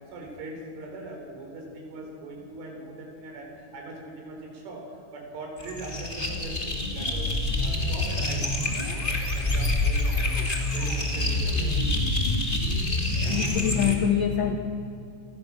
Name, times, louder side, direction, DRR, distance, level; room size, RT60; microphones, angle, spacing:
voice 1, 0.1-7.3 7.6-8.9 9.3-10.5 10.7-11.9, right 2 dB, 80° right, 1 dB, 7.1 m, -41 dB
sound 1, 5.6-13.9, left 2 dB, 15° left, 1.7 m, -26 dB
voice 2, 13.2-14.6, left 9 dB, 85° left, 6 dB, 1.8 m, -25 dB
30.0 x 22.0 x 6.5 m, 2.9 s
omnidirectional pair, 5.4 m